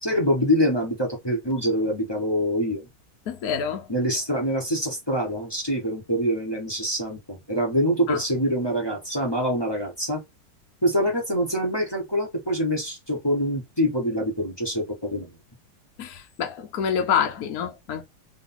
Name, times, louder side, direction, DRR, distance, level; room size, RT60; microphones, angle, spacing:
voice 1, 0.0-2.9 3.9-10.2 10.8-15.3, equal, 15° left, 1.0 m, -25 dB
voice 2, 3.3-3.9 8.1-8.2 16.0-18.0, left 7 dB, 60° left, 1.0 m, -27 dB
3.8 x 3.3 x 3.9 m
omnidirectional pair, 2.2 m